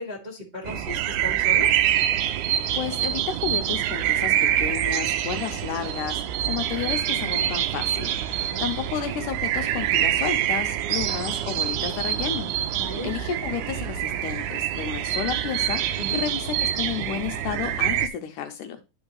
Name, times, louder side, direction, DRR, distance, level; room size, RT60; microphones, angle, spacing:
voice 1, 0.0-1.8 8.3-8.6 12.7-13.1 16.0-16.2, left 2 dB, 30° right, -4 dB, 0.8 m, -36 dB
sound 1, 0.7-18.1, right 11 dB, 80° right, 1.8 m, -25 dB
voice 2, 2.7-18.8, left 9 dB, 80° left, 6 dB, 2.0 m, -32 dB
11.5 x 4.4 x 3.2 m, 0.29 s
omnidirectional pair, 4.1 m